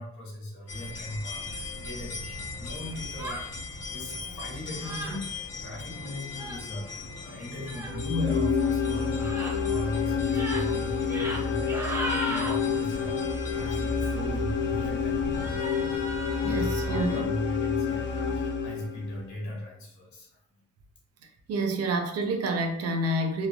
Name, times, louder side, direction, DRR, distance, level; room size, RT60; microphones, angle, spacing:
voice 1, 0.0-15.6 16.4-20.3, left 1 dB, 70° left, -3 dB, 1.4 m, -38 dB
sound 1, 0.7-17.1, left 3 dB, 55° left, 1.1 m, -40 dB
sound 2, 3.1-3.5 4.7-5.2 6.3-6.6 7.7-8.0 9.2-9.6 10.2-10.6 11.0-11.4 11.7-12.5 15.3-17.2, right 1 dB, 10° right, 0.7 m, -35 dB
sound 3, 7.9-19.2, left 6 dB, 40° left, 0.5 m, -28 dB
voice 2, 16.4-17.3 21.5-23.5, right 2 dB, 55° right, 4 dB, 0.6 m, -28 dB
3.0 x 2.3 x 2.4 m, 0.73 s
cardioid pair, 90°, 30 cm